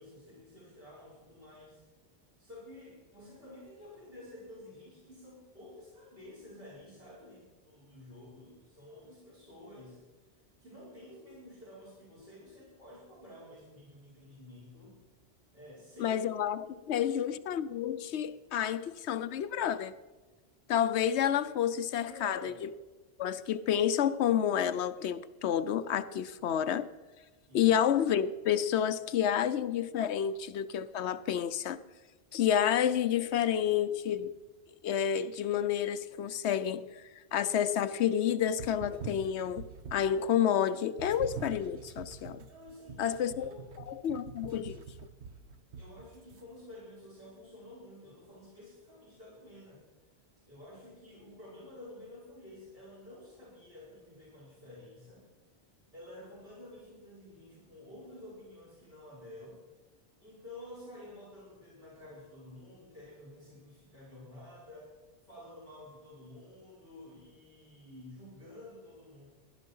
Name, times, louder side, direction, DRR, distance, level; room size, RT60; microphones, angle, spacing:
voice 1, 0.0-1.8 2.4-10.0 10.6-15.0 15.5-16.2 16.7-17.1 22.0-22.5 27.4-27.7 42.5-43.6 45.8-49.8 50.5-55.2 55.9-59.6 60.2-64.9 65.2-69.3, left 1 dB, 65° right, 5.6 m, -51 dB
voice 2, 16.0-19.9 20.7-22.7 23.2-26.9 27.5-31.8 32.3-34.3 34.8-36.9 37.3-39.7 39.9-42.4 43.0-43.5 43.9-44.8, left 9 dB, 90° left, 1.0 m, -29 dB
sound 1, 38.5-40.3 41.0-46.4, right 5 dB, 90° right, 1.2 m, -46 dB
17.0 x 11.5 x 5.4 m
omnidirectional pair, 1.1 m